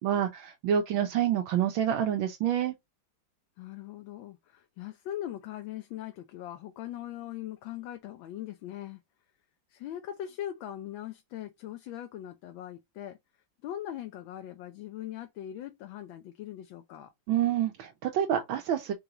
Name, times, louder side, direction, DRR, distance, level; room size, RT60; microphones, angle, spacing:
voice 1, 0.0-2.7 17.3-18.9, right 10 dB, 85° right, 1.5 m, -27 dB
voice 2, 3.6-9.0 9.7-13.2 13.6-17.1, left 12 dB, 80° left, 1.4 m, -40 dB
4.6 x 3.0 x 3.7 m
omnidirectional pair, 2.1 m